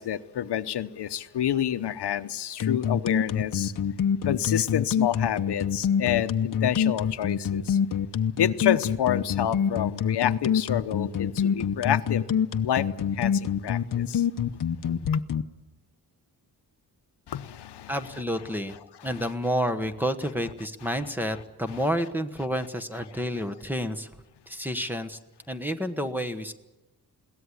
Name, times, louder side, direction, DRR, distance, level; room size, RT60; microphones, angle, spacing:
voice 1, 0.0-3.7 4.2-7.8 8.4-12.2 12.6-14.2 17.3-18.0 19.1-19.2, left 10 dB, 85° left, 1.0 m, -28 dB
sound 1, 2.6-15.4, left 8 dB, 55° left, 0.9 m, -25 dB
voice 2, 17.9-18.7 19.0-24.1 24.5-25.2 25.5-26.5, equal, 5° right, 1.2 m, -29 dB
22.0 x 17.5 x 9.7 m
wide cardioid pair, 155°, 39 cm